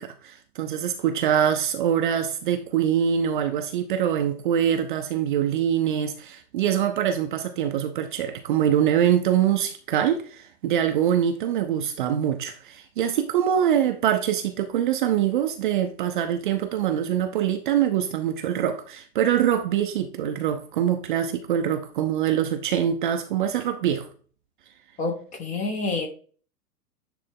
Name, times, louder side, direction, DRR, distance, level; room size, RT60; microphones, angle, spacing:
voice 1, 0.0-24.1, right 9 dB, 30° right, 0.6 m, -24 dB
voice 2, 25.0-26.1, left 3 dB, 15° left, 0.8 m, -28 dB
9.9 x 3.3 x 3.7 m
figure-of-eight pair, 105°, 48 cm